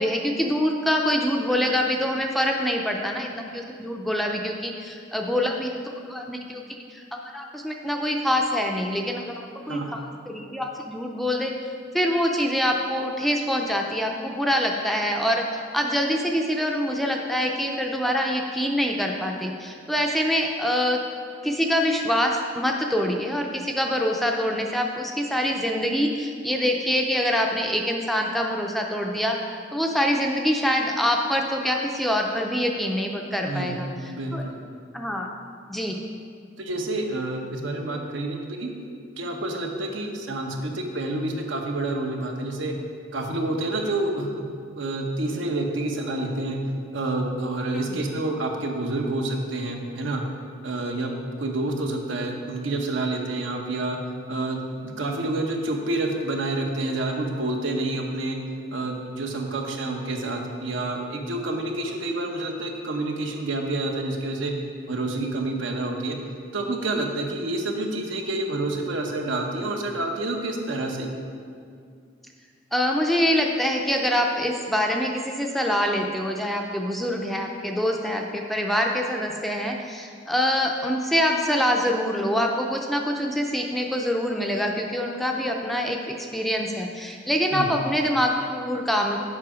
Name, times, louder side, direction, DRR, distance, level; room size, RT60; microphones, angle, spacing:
voice 1, 0.0-5.7 6.1-10.0 10.3-11.5 11.9-21.0 21.4-33.9 34.3-34.4 34.9-35.3 35.7-36.0 47.7-48.0 72.7-89.2, equal, ahead, 1 dB, 0.4 m, -25 dB
voice 2, 33.4-34.6 36.6-38.7 39.2-42.7 43.1-44.5 44.7-46.6 46.9-50.2 50.6-51.1 51.4-54.0 54.3-58.4 58.7-64.5 64.9-66.2 66.5-71.1 87.5-87.7, right 2 dB, 75° right, 2 dB, 0.9 m, -28 dB
7.5 x 5.5 x 4.9 m, 2.3 s
head